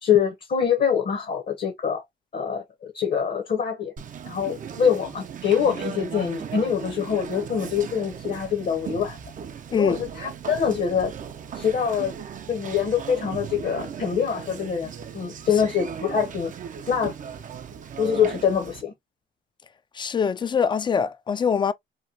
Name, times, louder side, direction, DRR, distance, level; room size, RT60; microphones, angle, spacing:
voice 1, 0.0-2.0 2.3-3.9 4.2-9.2 9.7-11.1 11.5-12.1 12.5-16.5 16.9-17.1 18.0-18.9, left 7 dB, 50° left, 0.8 m, -24 dB
Conversation, 4.0-18.8, right 7 dB, 40° right, 0.4 m, -37 dB
voice 2, 9.7-10.0 20.0-21.7, left 6 dB, 25° left, 0.3 m, -23 dB
3.0 x 2.2 x 2.6 m
cardioid pair, 90°, 20 cm